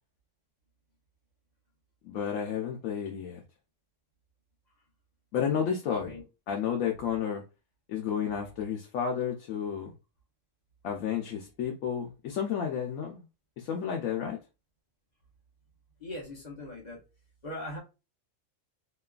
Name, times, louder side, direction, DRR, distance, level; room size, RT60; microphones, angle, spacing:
voice 1, 2.0-3.4 5.3-6.1 6.5-7.4 7.9-9.9 10.8-13.3 13.6-14.4, left 8 dB, 85° left, 1.0 m, -31 dB
voice 2, 5.9-6.2 16.0-17.0 17.4-17.8, left 1 dB, 40° left, 0.9 m, -40 dB
3.0 x 2.3 x 2.3 m
omnidirectional pair, 1.3 m